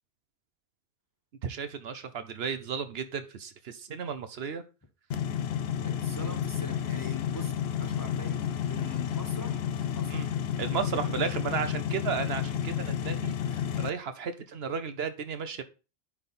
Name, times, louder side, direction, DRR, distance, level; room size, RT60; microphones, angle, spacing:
voice 1, 1.4-4.6 10.1-10.3 10.6-15.6, right 6 dB, 70° right, 10 dB, 1.0 m, -34 dB
sound 1, 5.1-13.9, left 9 dB, 70° left, 0.8 m, -31 dB
voice 2, 5.8-10.2, left 2 dB, 20° left, 4 dB, 0.9 m, -43 dB
9.8 x 3.6 x 4.2 m, 0.31 s
omnidirectional pair, 1.1 m